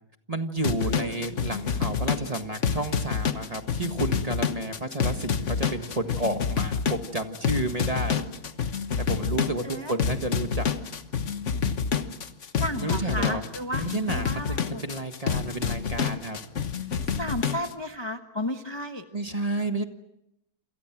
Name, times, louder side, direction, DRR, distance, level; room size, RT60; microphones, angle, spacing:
voice 1, 0.3-8.2 9.0-10.7 12.7-13.4 13.8-16.4 19.1-19.8, right 2 dB, 20° right, 6 dB, 1.5 m, -31 dB
sound 1, 0.6-17.7, left 6 dB, 45° left, 1.3 m, -28 dB
voice 2, 12.5-13.8 14.1-14.8 17.1-19.0, equal, 20° left, 5 dB, 0.8 m, -33 dB
28.5 x 27.0 x 6.1 m, 0.83 s
omnidirectional pair, 2.2 m